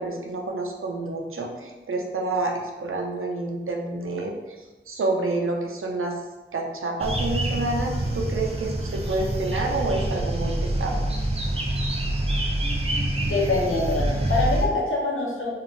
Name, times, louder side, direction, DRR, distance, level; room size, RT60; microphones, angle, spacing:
voice 1, 0.0-4.3 4.9-6.2 6.5-10.9, right 2 dB, 80° right, 1 dB, 0.5 m, -28 dB
sound 1, 7.0-14.7, right 1 dB, 30° right, 0.5 m, -26 dB
voice 2, 13.2-15.5, left 2 dB, 75° left, -4 dB, 0.8 m, -25 dB
2.5 x 2.5 x 3.1 m, 1.2 s
wide cardioid pair, 80°, 21 cm